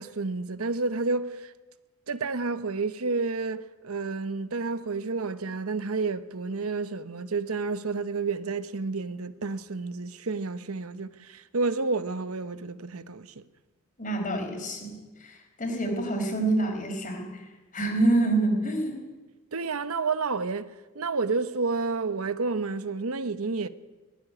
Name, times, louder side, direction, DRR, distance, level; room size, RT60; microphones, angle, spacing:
voice 1, 0.0-1.5 2.1-13.4 19.5-23.7, right 4 dB, 85° right, 1.0 m, -30 dB
voice 2, 14.0-17.4 17.7-19.0, right 2 dB, 40° left, 4.8 m, -27 dB
19.0 x 15.0 x 9.6 m
head